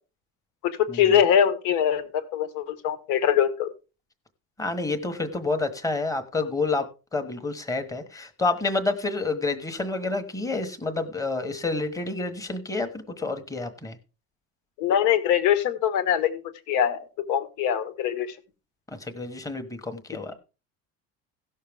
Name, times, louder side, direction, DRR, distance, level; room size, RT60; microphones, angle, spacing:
voice 1, 0.6-3.7 14.8-18.4, left 9 dB, 75° left, 10 dB, 1.6 m, -23 dB
voice 2, 4.6-6.9 7.1-14.0 19.0-20.4, left 3 dB, 10° left, 7 dB, 1.2 m, -29 dB
17.0 x 6.6 x 3.5 m, 0.31 s
cardioid pair, 165°, 32 cm